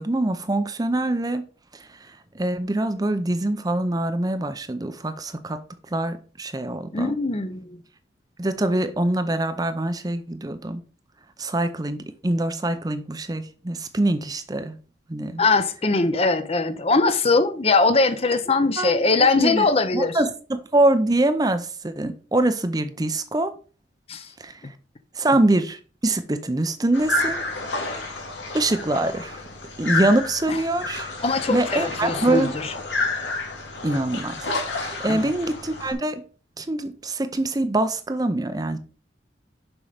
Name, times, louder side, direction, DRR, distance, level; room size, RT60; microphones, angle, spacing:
voice 1, 0.0-1.5 1.7-5.6 5.9-7.1 8.4-10.8 11.4-12.0 12.2-14.8 15.1-15.4 18.8-19.7 19.9-23.5 24.4-24.7 25.2-27.4 27.9-28.2 28.5-29.4 29.8-31.1 31.5-32.5 33.8-34.4 34.7-36.2 36.6-38.8, right 2 dB, 20° right, 0.6 m, -24 dB
voice 2, 6.9-7.8 15.4-20.2 24.1-24.3 30.5-30.6 31.2-32.7 35.1-35.3, left 3 dB, 30° left, 0.7 m, -21 dB
sound 1, 26.9-35.9, left 2 dB, 85° left, 2.3 m, -30 dB
7.1 x 5.5 x 5.0 m
head